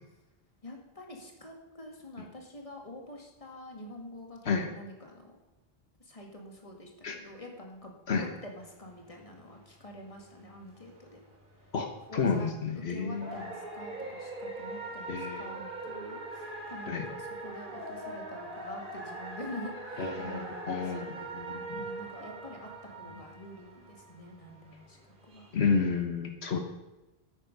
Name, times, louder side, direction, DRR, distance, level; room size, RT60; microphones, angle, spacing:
voice 1, 0.6-5.3 6.0-11.2 12.1-12.5 12.9-25.5, left 1 dB, 35° left, 1 dB, 2.1 m, -47 dB
sound 1, 8.5-25.7, right 2 dB, 55° right, 2.3 m, -42 dB
voice 2, 12.1-13.4 15.1-15.5 16.9-17.1 20.0-21.8 25.5-26.6, left 5 dB, 85° left, 5 dB, 1.5 m, -31 dB
13.0 x 9.6 x 5.3 m, 1.1 s
omnidirectional pair, 1.1 m